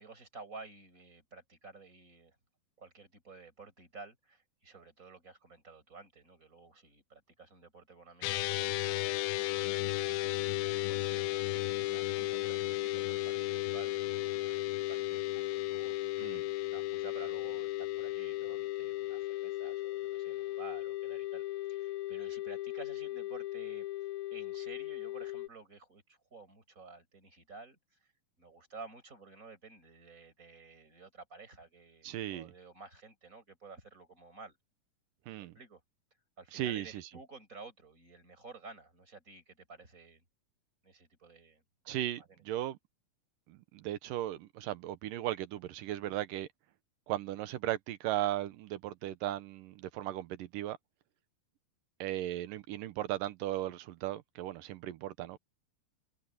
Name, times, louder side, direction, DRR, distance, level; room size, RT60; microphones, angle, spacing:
voice 1, 0.0-2.4 2.8-9.1 9.5-10.3 10.6-16.0 16.6-21.4 21.7-23.9 24.3-28.1 28.4-34.6 35.4-35.8 36.4-40.2 40.8-42.0 42.3-42.4, right 4 dB, 20° right, 6.2 m, -52 dB
sound 1, 8.2-25.5, left 17 dB, 85° left, 2.5 m, -35 dB
voice 2, 32.0-32.5 35.3-35.5 36.5-37.1 41.9-42.8 43.5-46.5 47.1-50.8 52.0-55.4, right 13 dB, 70° right, 2.5 m, -36 dB
omnidirectional pair, 4.2 m